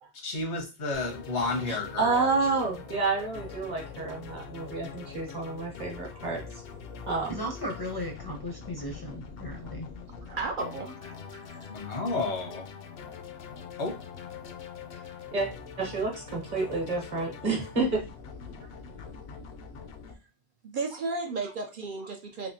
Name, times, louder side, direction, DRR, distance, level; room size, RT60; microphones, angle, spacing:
voice 1, 0.1-2.3 11.7-12.7 13.8-13.9, left 3 dB, 85° left, 0 dB, 1.4 m, -31 dB
sound 1, 0.9-20.1, left 6 dB, 65° left, 0.7 m, -43 dB
voice 2, 1.7-6.6 7.0-7.4 15.3-15.5 15.8-18.0, right 3 dB, 45° right, 1 dB, 1.0 m, -29 dB
voice 3, 7.3-9.9, equal, 30° left, 1 dB, 0.5 m, -36 dB
voice 4, 10.2-11.7 20.6-22.5, right 3 dB, 60° right, 3 dB, 0.6 m, -34 dB
3.5 x 3.0 x 2.7 m, 0.30 s
omnidirectional pair, 1.1 m